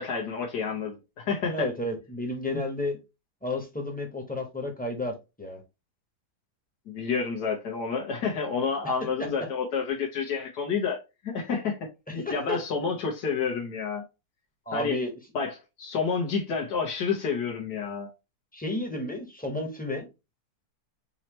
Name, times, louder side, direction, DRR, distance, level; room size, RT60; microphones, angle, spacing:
voice 1, 0.0-1.7 6.9-11.0 11.2-11.8 12.1-14.0 14.7-15.0 15.4-18.1, left 5 dB, 90° left, 1.7 m, -29 dB
voice 2, 1.5-3.0 3.4-5.6 9.0-9.5 12.1-12.6 14.7-15.1 18.5-20.1, left 1 dB, 5° left, 1.1 m, -32 dB
5.6 x 2.9 x 3.1 m
omnidirectional pair, 1.7 m